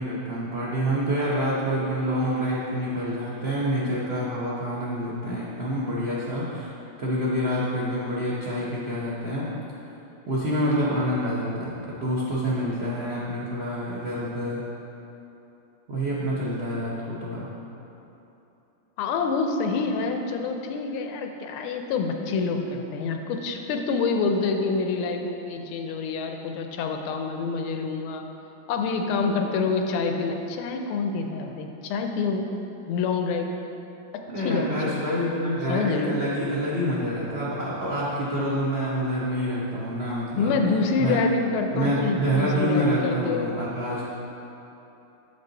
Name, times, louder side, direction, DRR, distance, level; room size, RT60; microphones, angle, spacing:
voice 1, 0.0-6.7 7.0-9.5 10.3-14.6 15.9-17.5 34.3-40.5 41.0-41.2 41.7-44.0, equal, 70° right, -7 dB, 0.5 m, -27 dB
voice 2, 19.0-28.2 28.7-32.5 32.9-33.5 34.4-35.0 35.7-36.1 40.4-43.6, left 4 dB, 85° left, 4 dB, 1.5 m, -27 dB
6.9 x 5.4 x 3.9 m, 3.0 s
omnidirectional pair, 2.3 m